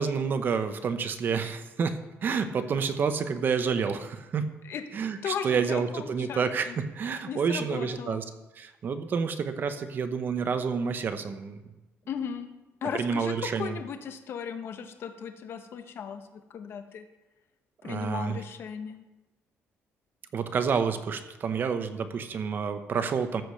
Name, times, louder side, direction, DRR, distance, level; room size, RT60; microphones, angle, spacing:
voice 1, 0.0-4.4 4.9-6.7 6.9-8.2 8.6-11.6 12.9-13.8 17.8-18.4 20.3-23.4, right 6 dB, 45° right, 9 dB, 1.0 m, -29 dB
voice 2, 5.2-6.8 7.3-8.2 12.1-12.5 12.8-17.0 17.8-19.0, left 7 dB, 55° left, 7 dB, 1.2 m, -36 dB
14.0 x 5.1 x 6.5 m, 1.1 s
cardioid pair, 130°, 5 cm